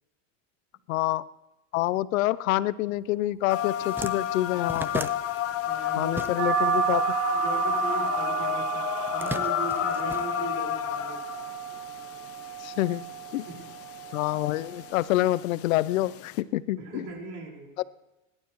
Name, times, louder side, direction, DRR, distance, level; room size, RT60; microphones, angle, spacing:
voice 1, 0.9-1.2 1.7-5.1 6.0-7.2 12.6-13.0 13.3-13.5 14.1-17.0 17.8-17.9, left 16 dB, 90° left, 18 dB, 0.7 m, -27 dB
sound 1, 3.2-3.4 3.6-6.8 7.0-8.2 8.9-10.9, right 2 dB, 5° right, 0.4 m, -38 dB
sound 2, 3.5-16.4, left 12 dB, 35° left, 0.8 m, -32 dB
voice 2, 5.5-6.5 7.3-11.2 13.5-13.8 16.8-17.7, right 4 dB, 70° right, 0 dB, 5.0 m, -39 dB
sound 3, 6.4-15.4, right 9 dB, 30° right, 0.9 m, -31 dB
28.5 x 12.0 x 3.1 m, 1.0 s
supercardioid pair, 125°, 39 cm